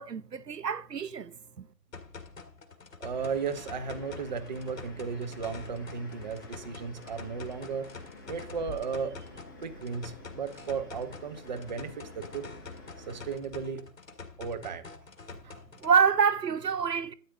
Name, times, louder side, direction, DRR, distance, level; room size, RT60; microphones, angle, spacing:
voice 1, 0.0-1.3 15.8-17.1, right 6 dB, 80° right, 0.8 m, -26 dB
sound 1, 1.9-15.9, left 4 dB, 55° left, 2.0 m, -47 dB
voice 2, 3.0-7.9 8.3-9.3 9.6-12.5 13.0-13.8 14.4-14.8 15.4-15.6, right 5 dB, 30° right, 1.0 m, -35 dB
sound 2, 3.1-13.4, left 2 dB, 15° left, 0.8 m, -49 dB
13.0 x 9.2 x 3.7 m
figure-of-eight pair, 140°, 48 cm